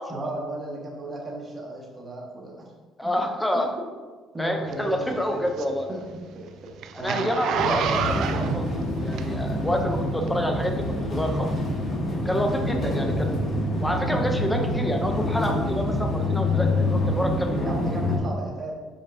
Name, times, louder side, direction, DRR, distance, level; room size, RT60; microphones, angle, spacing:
voice 1, 0.1-2.7 3.0-3.1 4.3-6.0 7.0-7.2 12.8-13.2 17.6-18.7, right 1 dB, 25° right, -4 dB, 1.7 m, -34 dB
voice 2, 3.0-3.7 4.4-5.9 6.9-11.5 12.2-13.3 13.8-17.6, equal, 5° left, 3 dB, 0.7 m, -28 dB
Zipper (clothing), 4.7-9.7 10.2-10.3, right 7 dB, 60° right, 0.4 m, -28 dB
sound 1, 7.5-18.2, left 1 dB, 40° left, 1.9 m, -26 dB
7.4 x 5.2 x 2.8 m, 1.4 s
cardioid pair, 135°, 0 cm